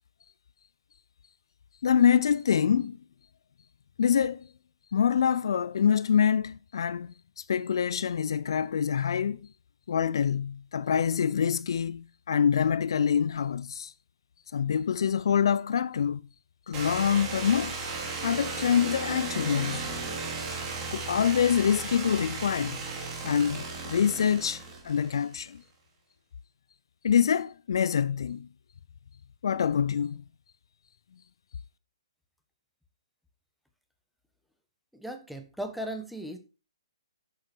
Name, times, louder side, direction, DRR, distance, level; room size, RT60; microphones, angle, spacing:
voice 1, 1.8-3.0 4.0-4.5 4.9-9.5 9.9-13.9 14.5-16.2 16.7-17.7 18.2-20.0 20.9-22.8 23.2-25.6 27.0-28.5 29.4-30.2, left 7 dB, 60° left, 0.5 m, -26 dB
sound 1, 16.7-25.5, right 4 dB, 25° right, 3.1 m, -35 dB
voice 2, 34.9-36.4, right 1 dB, ahead, 1.3 m, -37 dB
10.5 x 7.1 x 4.6 m
figure-of-eight pair, 130°, 3 cm